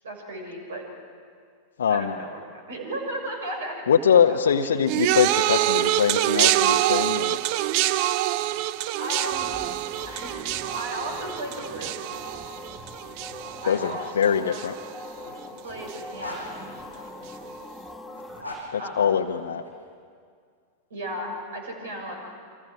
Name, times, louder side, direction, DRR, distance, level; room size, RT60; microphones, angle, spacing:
voice 1, 0.0-0.9 1.9-5.0 9.0-9.5 10.1-10.4 10.7-12.0 13.6-14.6 15.6-16.7 18.8-19.2 20.9-22.1, right 1 dB, 65° right, 3 dB, 6.4 m, -35 dB
voice 2, 1.8-2.1 3.9-7.4 13.7-14.7 18.7-19.6, left 7 dB, 65° left, 4 dB, 0.9 m, -22 dB
sound 1, 4.9-14.2 14.5-15.1 15.9-16.0, right 15 dB, 45° right, 0.6 m, -25 dB
sound 2, 7.2-10.8 11.8-14.0 14.9-17.3 18.1-19.7, left 1 dB, 90° right, 6.2 m, -44 dB
sound 3, 9.0-18.4, left 2 dB, ahead, 2.3 m, -42 dB
29.5 x 26.0 x 6.3 m, 2.2 s
figure-of-eight pair, 90°, 0 cm